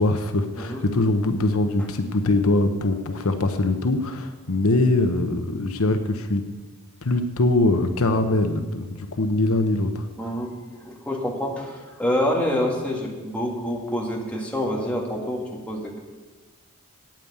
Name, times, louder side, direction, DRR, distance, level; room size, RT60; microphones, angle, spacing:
voice 1, 0.0-6.4 7.0-10.1, left 2 dB, 75° left, 7 dB, 0.9 m, -22 dB
voice 2, 10.2-16.0, left 1 dB, 5° left, -2 dB, 1.9 m, -27 dB
9.0 x 8.8 x 8.3 m, 1.4 s
head